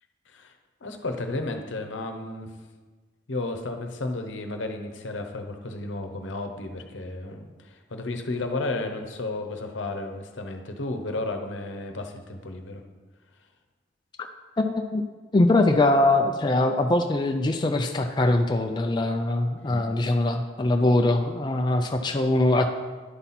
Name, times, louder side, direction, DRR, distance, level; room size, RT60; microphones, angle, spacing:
voice 1, 0.8-2.5 3.3-12.8 19.6-19.9, left 2 dB, 75° left, 5 dB, 0.8 m, -33 dB
voice 2, 14.6-15.0 15.3-22.7, left 2 dB, 25° left, 4 dB, 0.4 m, -22 dB
10.0 x 5.7 x 4.2 m, 1.4 s
head